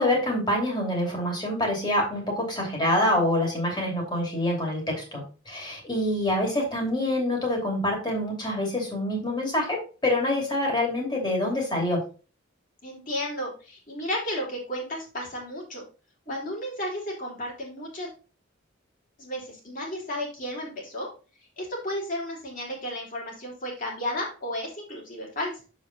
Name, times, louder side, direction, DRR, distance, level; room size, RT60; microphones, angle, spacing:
voice 1, 0.0-12.0, left 1 dB, 25° left, -1 dB, 2.7 m, -26 dB
voice 2, 12.8-15.8 16.3-18.1 19.2-21.1 21.6-25.6, left 1 dB, 45° left, -2 dB, 3.2 m, -33 dB
7.0 x 5.2 x 4.0 m, 0.34 s
head